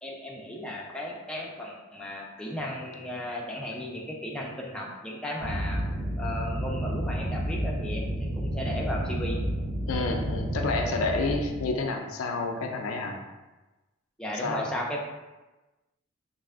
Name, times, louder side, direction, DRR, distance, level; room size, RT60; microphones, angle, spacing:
voice 1, 0.0-5.8 6.2-9.5 14.2-15.0, left 1 dB, 5° left, -3 dB, 0.3 m, -35 dB
sound 1, 5.4-11.7, right 1 dB, 70° right, 1.3 m, -31 dB
voice 2, 9.9-13.2 14.4-14.7, left 3 dB, 80° left, 3 dB, 0.4 m, -29 dB
3.2 x 2.5 x 2.4 m, 1.1 s
head